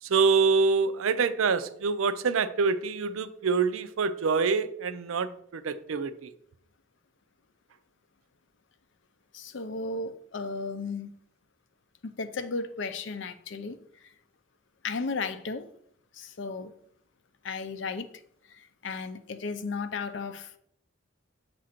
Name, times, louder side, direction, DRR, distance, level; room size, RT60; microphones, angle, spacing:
voice 1, 0.0-6.3, right 5 dB, 85° right, 0.5 m, -26 dB
voice 2, 9.3-11.2 12.0-14.1 14.8-15.7 16.1-16.7 17.4-18.1 18.5-20.6, left 4 dB, 65° left, 0.5 m, -35 dB
7.4 x 2.5 x 5.8 m
head